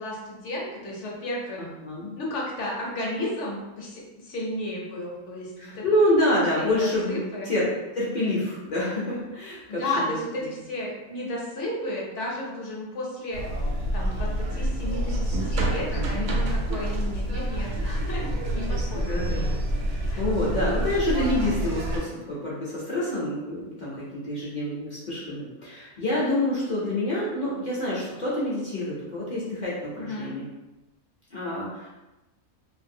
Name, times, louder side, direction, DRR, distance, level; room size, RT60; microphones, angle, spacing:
voice 1, 0.0-1.6 2.2-5.8 6.6-7.5 9.7-13.4 13.9-19.2 20.1-20.2 30.0-30.4, left 1 dB, 65° left, -3 dB, 1.0 m, -33 dB
voice 2, 1.6-2.1 5.6-10.2 15.9-16.3 18.9-19.5 19.9-30.5 31.3-31.9, left 1 dB, 45° left, -7 dB, 0.6 m, -27 dB
sound 1, 13.3-22.0, right 1 dB, 70° right, 0.9 m, -27 dB
2.6 x 2.6 x 2.6 m, 1.0 s
omnidirectional pair, 1.4 m